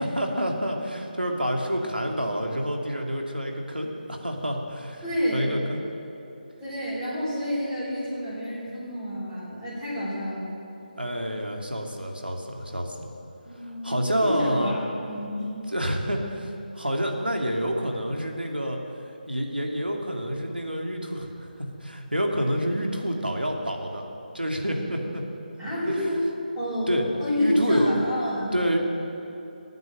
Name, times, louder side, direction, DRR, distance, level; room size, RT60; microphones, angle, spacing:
voice 1, 0.0-5.0 5.3-5.8 11.0-13.1 13.8-14.7 15.7-18.8 19.3-24.1 24.3-25.2 26.9-27.0 27.4-28.8, equal, 90° right, 1 dB, 2.4 m, -28 dB
voice 2, 5.0-5.5 6.6-10.6 13.4-15.6 25.6-26.2 26.5-26.9 27.2-28.5, equal, 15° right, -12 dB, 4.7 m, -29 dB
18.0 x 9.5 x 7.6 m, 2.8 s
figure-of-eight pair, 155°, 5 cm